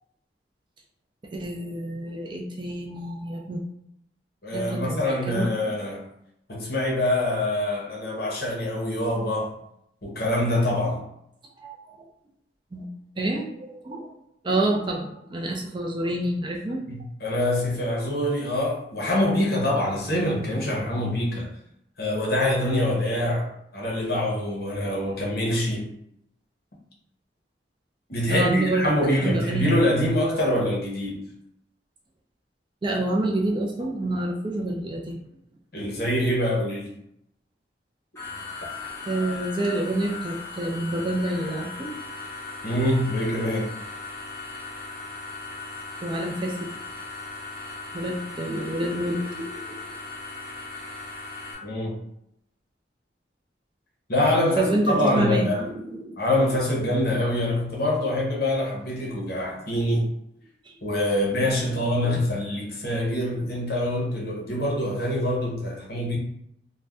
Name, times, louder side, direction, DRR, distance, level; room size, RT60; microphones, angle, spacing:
voice 1, 1.3-3.6 4.5-5.5 11.6-12.1 12.7-12.9 13.2-14.1 14.4-16.8 28.3-28.8 29.1-29.8 32.8-35.2 39.1-41.9 46.0-46.7 47.9-49.8 54.3-56.2 60.7-60.8, right 1 dB, 25° right, 0.4 m, -28 dB
voice 2, 4.4-6.1 6.5-9.6 10.0-11.0 16.9-21.5 22.0-23.5 23.7-25.9 28.1-31.2 35.7-36.9 42.6-43.7 51.6-52.0 54.1-55.7 56.2-60.1 60.8-66.2, left 1 dB, 55° left, 0.8 m, -25 dB
sound 1, 38.1-51.5, left 3 dB, 15° left, 0.8 m, -38 dB
2.5 x 2.1 x 3.4 m
head